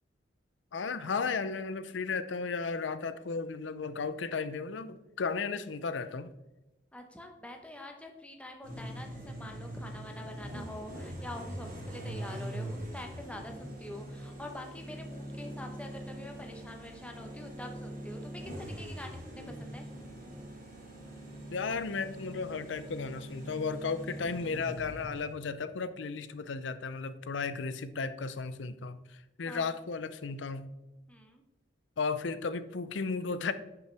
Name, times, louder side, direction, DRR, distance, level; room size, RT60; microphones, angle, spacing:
voice 1, 0.7-6.3 21.5-30.7 32.0-33.5, left 4 dB, 90° left, 0.5 m, -34 dB
voice 2, 6.9-19.9 29.4-29.7 31.1-31.4, left 1 dB, 5° left, 0.9 m, -45 dB
sound 1, 8.6-25.5, right 1 dB, 45° right, 2.4 m, -43 dB
10.5 x 5.6 x 3.4 m
head